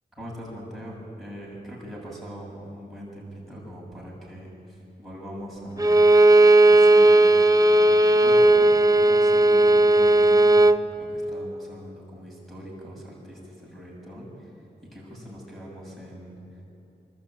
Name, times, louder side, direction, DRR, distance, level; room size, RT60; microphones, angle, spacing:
voice 1, 0.1-6.1 6.6-14.5 14.9-16.6, equal, ahead, -5 dB, 7.1 m, -41 dB
Bowed string instrument, 5.8-10.8, right 2 dB, 20° right, 0.5 m, -16 dB
26.5 x 12.5 x 8.9 m, 2.8 s
wide cardioid pair, 105°, 18 cm